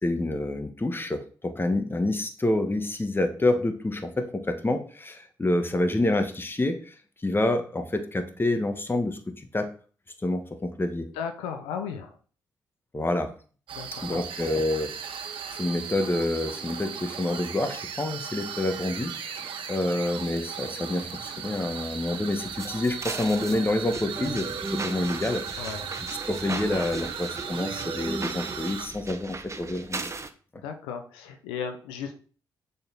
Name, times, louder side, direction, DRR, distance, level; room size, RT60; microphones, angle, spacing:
voice 1, 0.0-6.9 7.2-9.7 10.2-11.1 12.9-13.3 14.0-14.9 15.5-25.7 26.3-30.1, left 2 dB, 25° left, 7 dB, 1.5 m, -28 dB
voice 2, 11.1-12.1 13.7-14.2 25.6-25.9 30.6-32.2, left 7 dB, 90° left, 6 dB, 0.8 m, -35 dB
sound 1, 13.7-28.9, right 7 dB, 70° right, 1.1 m, -37 dB
sound 2, 22.6-30.3, right 3 dB, 30° right, 1.1 m, -36 dB
6.7 x 4.3 x 5.5 m, 0.40 s
hypercardioid pair, 50°, 9 cm